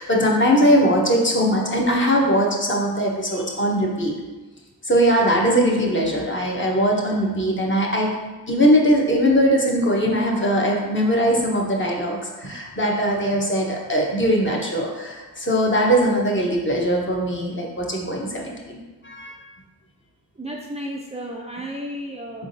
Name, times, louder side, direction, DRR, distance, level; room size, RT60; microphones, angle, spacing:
voice 1, 0.0-4.1 4.8-8.1 8.5-19.4, equal, 30° left, -2 dB, 1.0 m, -20 dB
voice 2, 20.4-22.5, equal, 15° right, -2 dB, 0.4 m, -33 dB
4.0 x 3.6 x 2.6 m, 1.2 s
cardioid pair, 40°, 38 cm